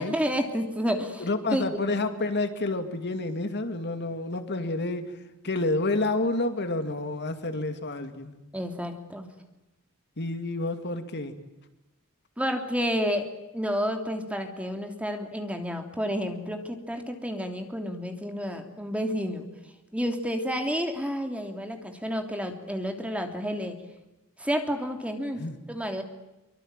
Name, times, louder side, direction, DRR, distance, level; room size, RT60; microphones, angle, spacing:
voice 1, 0.0-1.9 8.5-9.3 12.4-13.3 13.5-19.4 19.9-23.8 24.4-26.0, equal, 5° right, 5 dB, 3.1 m, -30 dB
voice 2, 1.2-5.1 5.4-8.4 10.2-11.4 25.4-25.7, left 2 dB, 50° left, 8 dB, 2.4 m, -29 dB
25.0 x 24.5 x 9.1 m, 1.0 s
head